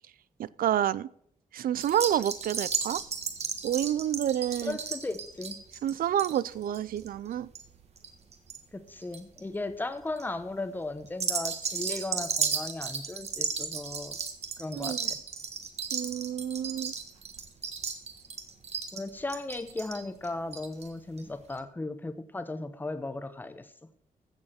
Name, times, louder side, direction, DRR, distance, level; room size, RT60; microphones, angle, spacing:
voice 1, 0.4-1.1 1.5-3.0 3.6-4.8 5.8-7.5 14.7-15.1 15.9-16.9, right 11 dB, 80° right, 21 dB, 0.5 m, -29 dB
sound 1, 1.8-8.6 8.9-9.4 9.9-10.2 11.1-20.9 21.2-21.3 21.5-21.6, right 6 dB, 50° right, 1.4 m, -34 dB
voice 2, 4.6-5.6 8.7-14.2 14.6-15.2 18.9-23.7, left 2 dB, 15° left, 11 dB, 0.8 m, -36 dB
15.5 x 7.1 x 4.3 m, 0.68 s
wide cardioid pair, 170°, 14 cm